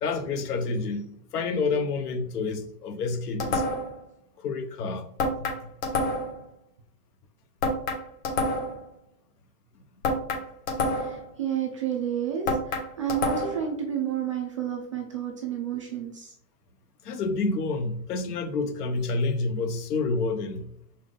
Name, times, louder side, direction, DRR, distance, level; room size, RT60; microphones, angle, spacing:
voice 1, 0.0-3.6 4.4-5.1 5.4-5.5 17.0-20.7, left 3 dB, 70° left, 1.3 m, -28 dB
sound 1, 3.4-4.0 5.2-6.4 7.6-8.8 10.0-11.3 12.5-13.7, left 2 dB, 55° left, 1.8 m, -28 dB
voice 2, 10.9-16.3, right 9 dB, 20° right, 0.4 m, -31 dB
6.4 x 4.6 x 3.8 m
supercardioid pair, 165°, 48 cm